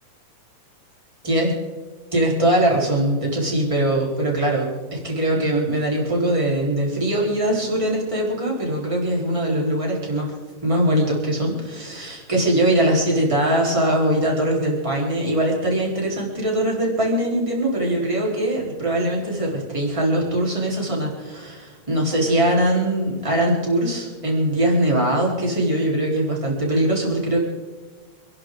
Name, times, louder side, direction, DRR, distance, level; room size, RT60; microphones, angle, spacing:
voice 1, 2.1-10.3 10.6-27.4, right 1 dB, 10° right, -3 dB, 3.9 m, -21 dB
27.0 x 11.0 x 3.8 m, 1.3 s
omnidirectional pair, 3.3 m